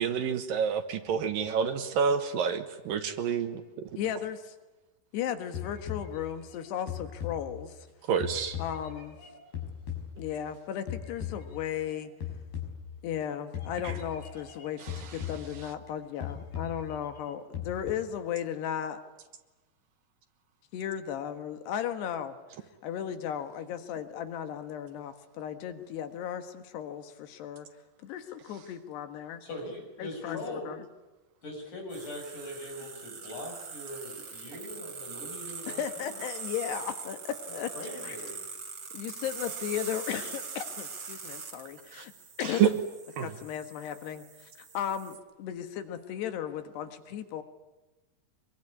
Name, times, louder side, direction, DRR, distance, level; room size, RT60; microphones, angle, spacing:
voice 1, 0.0-3.6 8.1-8.6 42.0-42.1 42.4-42.7 43.2-43.3, right 7 dB, 65° right, 8 dB, 2.7 m, -28 dB
voice 2, 4.0-4.6 5.1-7.8 8.6-9.2 10.2-12.1 13.0-19.0 20.7-22.4 22.8-27.7 28.0-29.4 30.0-30.9 35.7-37.7 38.0-38.2 38.9-42.1 42.4-42.8 43.2-44.5 44.8-47.4, left 9 dB, 85° left, 9 dB, 3.6 m, -35 dB
sound 1, 5.5-7.9 8.2-10.6 10.9-12.0 12.2-13.2 13.5-15.9 16.2-17.9, left 8 dB, 70° left, 7.6 m, -39 dB
voice 3, 29.4-30.8 31.4-36.2 37.7-38.4, left 1 dB, 50° left, 2 dB, 8.4 m, -41 dB
sound 2, 31.9-45.1, right 5 dB, 40° right, 4.1 m, -42 dB
25.0 x 23.0 x 9.9 m, 1.1 s
omnidirectional pair, 4.6 m